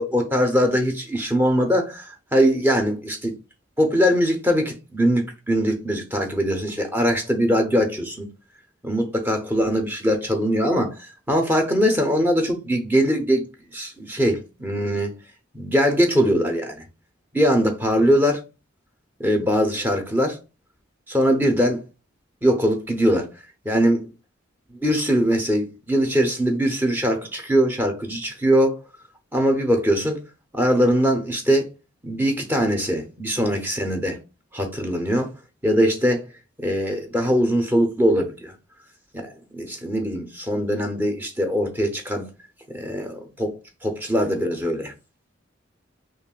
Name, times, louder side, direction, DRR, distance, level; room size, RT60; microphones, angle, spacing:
voice 1, 0.0-3.3 3.8-8.3 8.8-13.5 13.7-15.1 15.5-16.8 17.3-18.4 19.2-20.4 21.1-21.8 22.4-23.3 23.6-24.0 24.8-28.8 29.3-30.2 30.5-31.7 32.0-34.2 34.5-35.3 35.6-36.2 36.6-38.5 39.1-42.3 42.7-43.6 43.8-44.9, equal, 10° right, 0.7 m, -21 dB
5.8 x 2.5 x 2.3 m
head